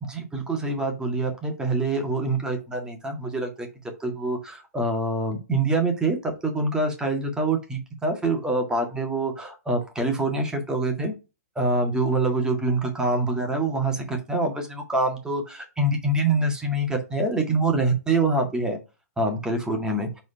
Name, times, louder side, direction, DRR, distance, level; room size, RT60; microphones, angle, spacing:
voice 1, 0.0-3.7 4.0-11.1 11.6-18.8 19.2-20.1, right 2 dB, 10° right, 3 dB, 1.7 m, -25 dB
4.7 x 4.0 x 5.6 m, 0.28 s
figure-of-eight pair, 115°, 9 cm